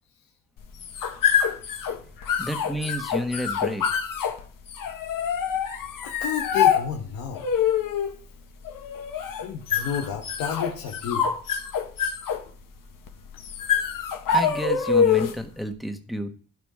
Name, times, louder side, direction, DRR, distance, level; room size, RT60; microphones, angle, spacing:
sound 1, 0.6-15.5, left 7 dB, 65° left, 1.5 m, -26 dB
voice 1, 2.4-3.8 14.3-16.3, equal, ahead, 6 dB, 1.4 m, -30 dB
voice 2, 6.0-7.4 9.1-11.3, left 8 dB, 85° left, 1 dB, 1.3 m, -31 dB
12.5 x 5.0 x 4.9 m, 0.43 s
cardioid pair, 80°, 35 cm